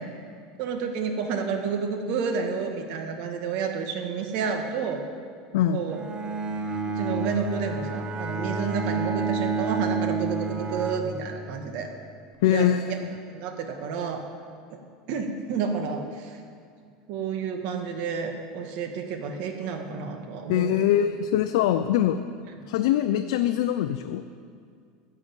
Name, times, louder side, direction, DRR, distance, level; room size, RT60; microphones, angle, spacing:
voice 1, 0.6-5.0 5.7-6.1 7.0-11.9 12.5-13.0 13.2-14.2 15.1-16.4 17.1-20.7, right 6 dB, 60° right, 5 dB, 1.6 m, -30 dB
Bowed string instrument, 5.9-11.7, right 4 dB, 30° right, 1.1 m, -29 dB
voice 2, 12.4-13.1 20.5-22.2 22.7-24.2, left 11 dB, 80° left, 8 dB, 0.5 m, -23 dB
11.0 x 6.7 x 9.1 m, 2.2 s
supercardioid pair, 135°, 3 cm